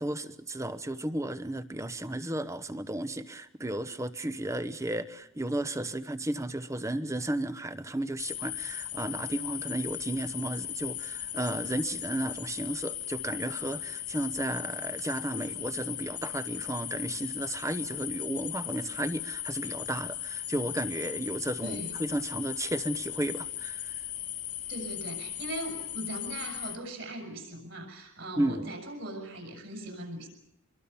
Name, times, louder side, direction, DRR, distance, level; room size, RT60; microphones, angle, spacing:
voice 1, 0.0-23.9 28.4-28.7, right 1 dB, 15° right, 12 dB, 1.0 m, -33 dB
sound 1, 8.2-26.8, left 11 dB, 35° left, 1.5 m, -37 dB
voice 2, 21.6-22.0 24.7-30.3, right 1 dB, 55° right, 3 dB, 7.3 m, -39 dB
25.5 x 23.0 x 7.1 m, 0.79 s
head